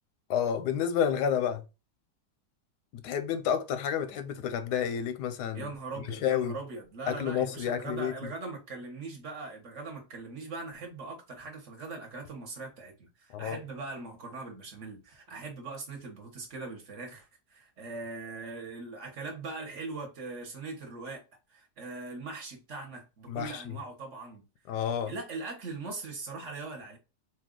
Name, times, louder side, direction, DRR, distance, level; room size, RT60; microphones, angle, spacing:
voice 1, 0.3-1.6 3.0-5.7 6.1-6.6 7.1-8.3 13.3-13.6 23.3-23.7 24.7-25.1, left 8 dB, 85° left, 1.2 m, -30 dB
voice 2, 5.5-21.2 21.5-24.4 25.1-27.0, right 3 dB, 50° right, 1.2 m, -41 dB
4.2 x 2.3 x 3.7 m
omnidirectional pair, 1.8 m